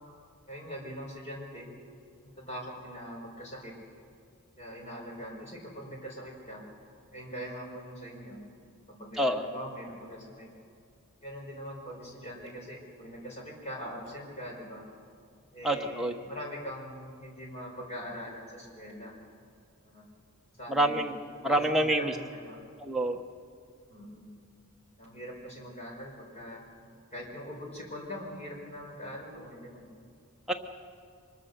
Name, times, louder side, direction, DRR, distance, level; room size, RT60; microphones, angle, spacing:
voice 1, 0.5-1.7 2.2-3.7 4.6-6.6 7.1-8.4 8.9-10.5 11.2-14.8 15.5-19.1 19.8-20.0 20.5-22.6 23.9-24.3 25.0-26.6 27.1-29.9, equal, 30° left, -1 dB, 5.0 m, -42 dB
voice 2, 15.6-16.1 20.7-21.2 21.4-22.1 22.8-23.2 30.5-30.6, right 1 dB, ahead, 1 dB, 1.1 m, -27 dB
24.5 x 21.5 x 6.8 m, 2.4 s
head